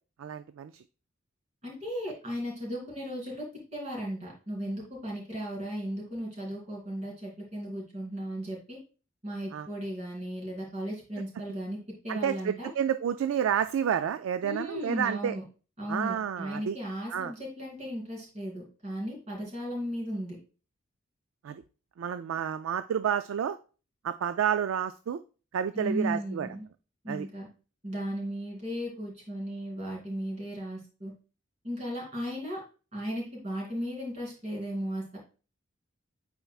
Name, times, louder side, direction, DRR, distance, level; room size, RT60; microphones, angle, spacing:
voice 1, 0.2-0.8 9.5-9.7 12.1-15.3 15.9-16.8 17.1-17.3 21.4-21.6 22.0-23.6 24.0-25.2 25.5-26.5 27.1-27.3, right 8 dB, 90° right, 11 dB, 0.3 m, -30 dB
voice 2, 1.6-3.4 3.7-8.8 9.2-11.8 12.0-12.7 14.4-15.4 15.8-20.4 25.7-26.7 27.0-27.5 27.8-31.1 31.6-32.6 32.9-35.2, equal, 35° right, -3 dB, 3.2 m, -36 dB
8.9 x 4.5 x 2.3 m, 0.35 s
head